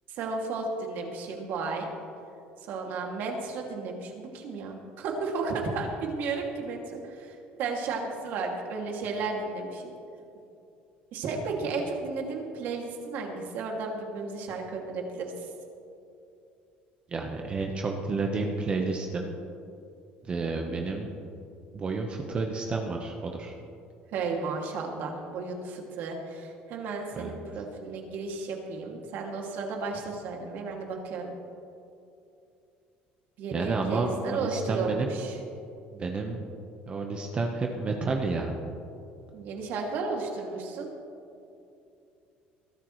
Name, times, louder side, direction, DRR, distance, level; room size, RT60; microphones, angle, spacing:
voice 1, 0.1-1.9 2.6-9.9 11.1-15.5 24.1-31.3 33.4-35.4 39.3-40.9, right 4 dB, 65° right, 1 dB, 2.6 m, -33 dB
voice 2, 17.1-19.4 20.2-21.1 21.7-23.5 27.2-27.3 33.5-35.1 35.9-36.4 36.9-38.6, right 3 dB, 30° right, 2 dB, 1.2 m, -30 dB
22.0 x 13.0 x 3.3 m, 2.7 s
cardioid pair, 130°, 4 cm